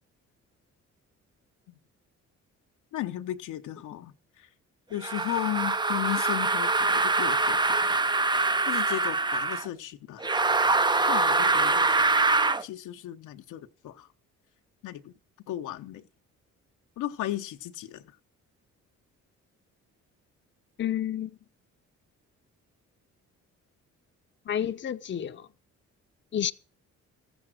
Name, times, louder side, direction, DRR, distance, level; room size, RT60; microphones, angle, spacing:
voice 1, 2.9-4.5 4.9-8.0 8.3-10.3 11.0-12.0 12.6-14.1 14.8-15.1 15.5-16.0 17.0-18.1, left 14 dB, 85° left, 0.9 m, -35 dB
sound 1, 5.0-9.7 10.2-12.6, right 3 dB, 15° right, 0.5 m, -24 dB
voice 2, 20.8-21.3 24.5-25.5 26.3-26.5, left 10 dB, 40° left, 0.7 m, -30 dB
14.0 x 7.1 x 6.3 m
cardioid pair, 90°, 30 cm